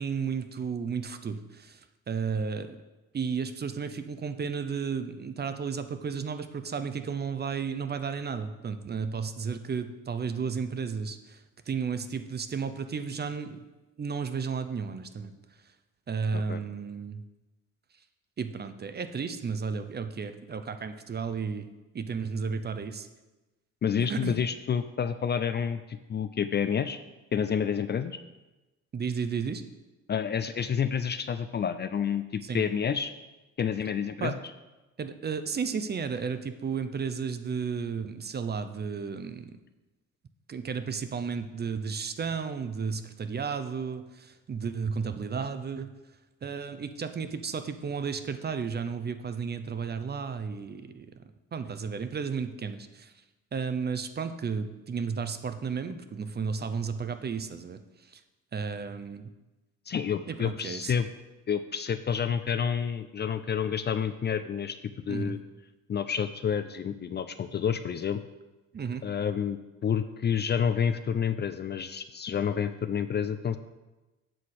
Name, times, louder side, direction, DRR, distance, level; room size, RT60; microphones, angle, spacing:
voice 1, 0.0-2.8 3.1-11.4 11.7-13.6 14.0-15.3 16.1-17.2 18.4-21.7 21.9-23.1 24.0-24.4 28.9-29.6 32.4-32.6 34.2-34.3 35.0-39.6 40.5-45.9 46.4-51.1 51.5-53.1 53.5-58.2 58.5-59.3 60.3-60.9 65.1-65.4 68.7-69.1, right 5 dB, 35° right, 10 dB, 0.6 m, -33 dB
voice 2, 23.8-27.0 27.3-28.2 30.1-33.1 33.6-34.3 59.9-61.1 61.5-64.8 65.1-65.4 65.9-68.2 69.0-73.6, left 7 dB, 35° left, 11 dB, 0.4 m, -29 dB
7.6 x 4.0 x 6.5 m, 1.1 s
cardioid pair, 90°, 30 cm